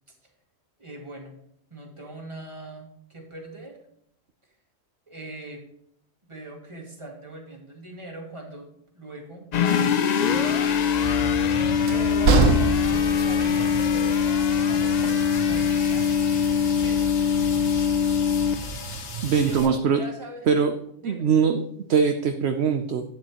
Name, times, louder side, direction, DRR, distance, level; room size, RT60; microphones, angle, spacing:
voice 1, 0.8-1.4 1.7-3.8 5.1-5.6 6.3-8.7 8.9-10.8 11.9-17.3 19.4-20.5 21.0-21.3, right 2 dB, 20° right, 0 dB, 2.2 m, -40 dB
sound 1, 9.5-18.9, left 7 dB, 90° left, 0.3 m, -23 dB
sound 2, 9.6-19.7, left 5 dB, 50° left, 1.2 m, -38 dB
Train, 11.0-19.6, right 4 dB, 75° right, 1.3 m, -29 dB
voice 2, 19.2-20.0 20.5-20.7 21.0-23.0, right 6 dB, 60° right, 7 dB, 0.9 m, -22 dB
12.0 x 9.1 x 3.0 m, 0.71 s
omnidirectional pair, 1.4 m